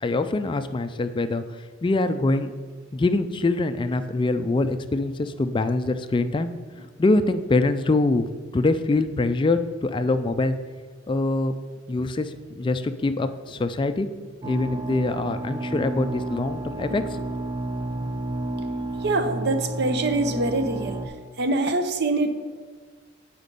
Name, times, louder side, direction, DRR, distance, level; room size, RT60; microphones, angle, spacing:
voice 1, 0.0-2.5 2.9-6.5 7.0-8.3 8.5-10.5 11.1-11.5 11.9-14.1 14.4-17.2, left 2 dB, 25° left, 10 dB, 0.3 m, -24 dB
sound 1, 14.4-21.1, right 2 dB, 25° right, 0.6 m, -31 dB
voice 2, 19.0-21.0 21.4-22.3, right 2 dB, 55° right, 8 dB, 0.7 m, -24 dB
8.2 x 5.1 x 5.2 m, 1.5 s
head